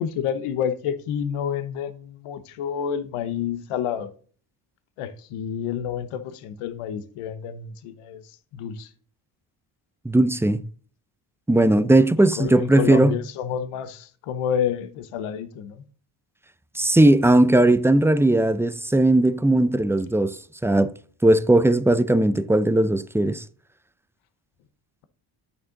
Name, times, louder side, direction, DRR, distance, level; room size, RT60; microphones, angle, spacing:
voice 1, 0.0-4.1 5.0-8.9 12.4-15.8, left 8 dB, 85° left, 0.9 m, -29 dB
voice 2, 10.0-10.6 11.5-13.2 16.7-20.9 21.2-23.4, right 1 dB, 5° right, 0.5 m, -18 dB
8.6 x 6.7 x 3.8 m
supercardioid pair, 55°, 50 cm